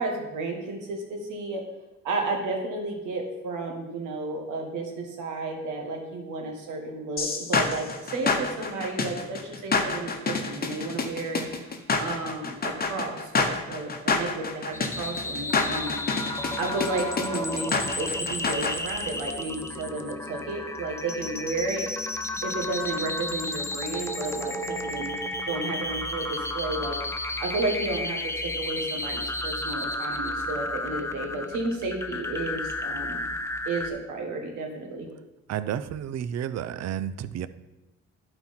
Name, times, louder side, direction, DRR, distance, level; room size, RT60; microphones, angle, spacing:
voice 1, 0.0-1.6 2.0-16.0 16.6-21.9 22.4-25.1 25.5-33.2 33.6-35.1, right 2 dB, 90° right, 2 dB, 1.7 m, -32 dB
sound 1, 7.2-18.7, left 4 dB, 30° left, 1.0 m, -28 dB
sound 2, 14.7-33.9, left 1 dB, 10° left, 0.7 m, -32 dB
voice 2, 35.5-37.5, right 9 dB, 60° right, 14 dB, 0.5 m, -31 dB
11.5 x 4.4 x 4.3 m, 0.99 s
cardioid pair, 90°, 30 cm